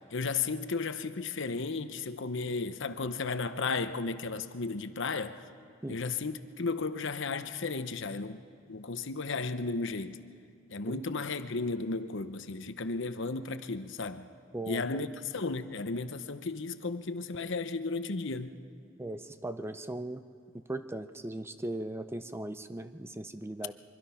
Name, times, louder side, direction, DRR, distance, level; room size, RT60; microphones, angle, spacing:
voice 1, 0.1-5.4 5.9-8.4 8.7-10.2 10.7-14.3 14.7-18.5, left 4 dB, 65° left, 10 dB, 0.9 m, -34 dB
voice 2, 14.5-15.0 19.0-20.2 20.7-23.7, right 1 dB, 10° right, 10 dB, 0.6 m, -38 dB
24.5 x 24.0 x 5.7 m, 2.2 s
head